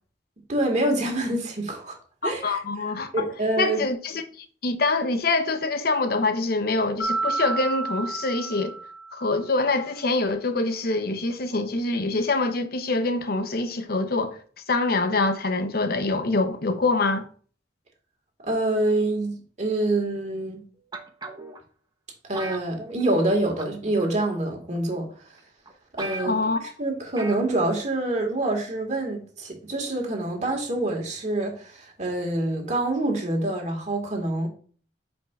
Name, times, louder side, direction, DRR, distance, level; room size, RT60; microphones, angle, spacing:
voice 1, 0.5-2.0 2.2-2.6 3.1-3.8 18.4-20.6 22.2-25.4 25.9-34.5, right 2 dB, 45° right, 1.8 m, -26 dB
voice 2, 2.2-3.2 3.6-8.7 9.1-14.4 14.7-17.3 26.2-26.6, left 3 dB, 60° left, 0.8 m, -25 dB
Mallet percussion, 7.0-9.4, right 3 dB, 85° left, 1.0 m, -30 dB
sound 1, 20.9-21.6 22.3-23.3 23.6-23.9 24.7-24.8 25.4-25.5 25.7-25.8 26.0-26.6 27.2-27.5 27.8-27.9, right 3 dB, 25° right, 0.9 m, -36 dB
8.4 x 5.2 x 2.5 m
head